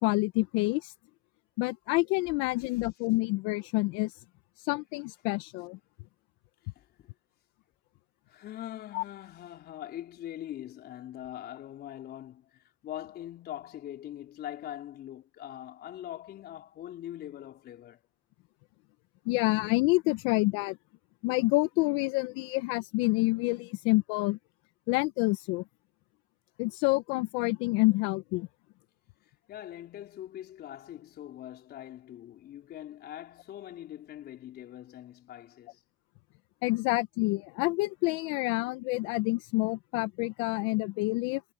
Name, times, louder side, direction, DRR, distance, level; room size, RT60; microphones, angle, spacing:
voice 1, 0.0-0.9 1.6-4.2 4.6-5.8 8.9-9.0 19.2-20.8 21.2-24.4 24.9-25.6 26.6-28.5 36.6-41.4, left 23 dB, 70° left, 1.6 m, -28 dB
voice 2, 6.8-7.1 8.3-18.0 29.5-35.8, left 12 dB, 50° left, 4.3 m, -43 dB
hypercardioid pair, 80°, 21 cm